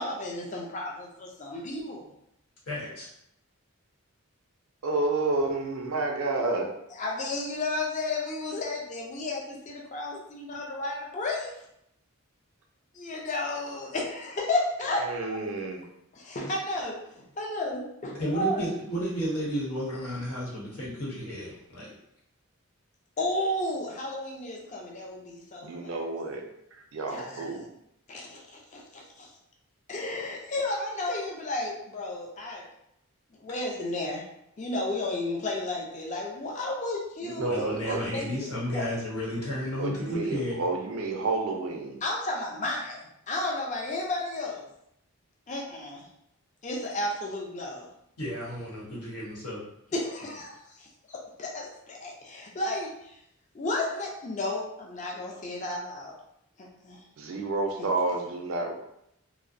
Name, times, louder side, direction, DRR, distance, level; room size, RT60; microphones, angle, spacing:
voice 1, 0.0-2.1 7.0-11.6 12.9-15.4 16.1-17.1 17.4-18.6 23.2-26.0 27.1-27.5 28.1-29.3 29.9-32.7 33.4-34.3 34.6-38.3 38.7-38.9 42.0-44.7 45.5-46.1 46.6-47.9 49.9-53.2 53.5-56.1 56.6-57.0 57.8-57.9, left 2 dB, 35° left, -1 dB, 0.4 m, -33 dB
voice 2, 2.7-3.1 18.2-21.9 37.4-40.6 48.2-49.6, equal, 90° left, -5 dB, 0.9 m, -32 dB
voice 3, 4.8-6.7 15.0-15.8 25.6-26.4 26.9-27.7 37.2-38.0 39.8-42.0 57.2-58.7, right 3 dB, 65° right, 2 dB, 0.4 m, -30 dB
2.5 x 2.0 x 2.5 m, 0.78 s
head